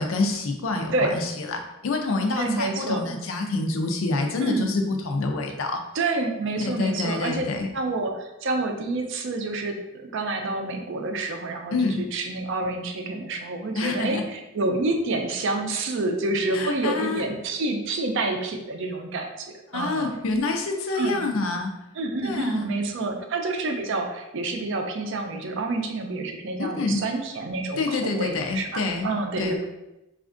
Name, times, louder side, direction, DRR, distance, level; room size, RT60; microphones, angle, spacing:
voice 1, 0.0-5.8 6.6-7.7 11.7-12.0 13.8-14.2 16.5-17.2 19.7-21.7 22.2-22.7 23.0-23.1 26.6-27.0 27.8-29.1 29.4-29.6, left 3 dB, 65° left, 4 dB, 0.5 m, -27 dB
voice 2, 2.4-3.1 4.4-4.7 5.9-7.4 7.7-9.8 10.1-20.1 20.9-21.2 22.0-29.7, right 2 dB, 60° right, 4 dB, 0.4 m, -28 dB
4.2 x 2.4 x 2.5 m, 0.93 s
head